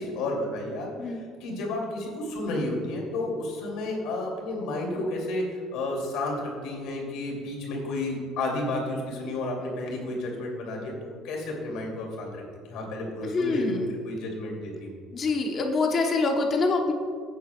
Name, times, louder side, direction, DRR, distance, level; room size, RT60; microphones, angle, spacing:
voice 1, 0.0-12.4 12.7-14.9, left 2 dB, 70° left, -1 dB, 2.6 m, -32 dB
voice 2, 13.2-14.0 15.1-16.9, left 3 dB, 30° left, 2 dB, 1.0 m, -25 dB
15.5 x 9.1 x 2.3 m, 2.1 s
cardioid pair, 160°, 0 cm